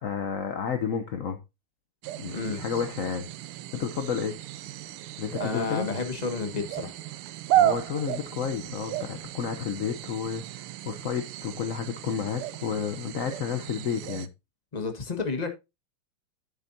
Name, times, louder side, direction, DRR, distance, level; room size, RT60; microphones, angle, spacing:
voice 1, 0.0-1.4 2.2-3.3 3.7-4.3 5.2-5.9 7.6-14.3, left 7 dB, 60° left, 0.9 m, -31 dB
sound 1, 2.0-14.3, right 13 dB, 80° right, 1.5 m, -33 dB
voice 2, 5.4-6.9 14.7-15.5, left 4 dB, 20° left, 1.3 m, -31 dB
10.5 x 8.0 x 2.7 m
omnidirectional pair, 2.4 m